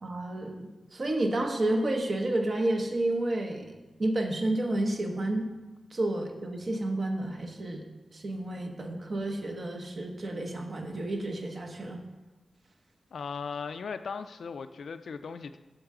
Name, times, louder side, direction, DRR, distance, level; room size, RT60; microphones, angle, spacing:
voice 1, 0.0-3.7 4.0-5.5 5.9-12.0, right 1 dB, 45° right, 3 dB, 0.9 m, -30 dB
voice 2, 13.1-15.6, left 5 dB, 75° left, 10 dB, 0.3 m, -37 dB
7.8 x 6.4 x 3.7 m, 1.1 s
wide cardioid pair, 95°, 0 cm